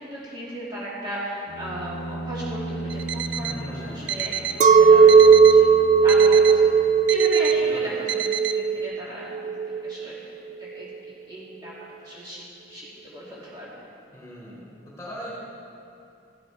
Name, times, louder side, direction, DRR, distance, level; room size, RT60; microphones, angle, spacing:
voice 1, 0.0-5.7 6.0-9.5 9.8-10.9 11.3-11.7 12.0-13.9, right 1 dB, 25° right, -8 dB, 2.4 m, -36 dB
Bowed string instrument, 1.5-7.3, right 1 dB, 80° left, 0.8 m, -36 dB
Alarm, 2.9-3.6 4.1-4.6 5.1-5.6 6.1-6.6 7.1-7.6 8.1-8.6, right 10 dB, 85° right, 0.6 m, -30 dB
voice 2, 3.3-4.3 7.5-8.1 14.1-15.3, equal, 15° left, -5 dB, 3.9 m, -40 dB
Chink clink, 4.6-10.1, right 5 dB, 40° right, 0.3 m, -16 dB
14.5 x 12.5 x 4.7 m, 2.6 s
head